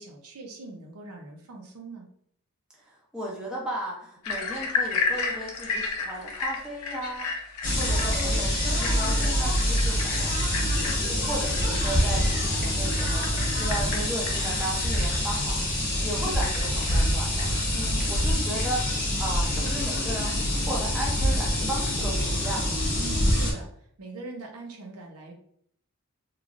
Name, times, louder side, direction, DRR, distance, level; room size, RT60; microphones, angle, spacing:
voice 1, 0.0-2.1 23.0-25.3, right 3 dB, 75° right, 1 dB, 0.6 m, -42 dB
voice 2, 2.8-7.3 7.7-10.7 11.2-15.6 16.0-22.8, right 1 dB, 5° right, -4 dB, 0.6 m, -35 dB
sound 1, 4.2-22.6, left 4 dB, 90° left, 0.6 m, -35 dB
sound 2, 7.6-23.5, equal, 40° left, 0.8 m, -25 dB
3.1 x 2.4 x 2.4 m, 0.66 s
head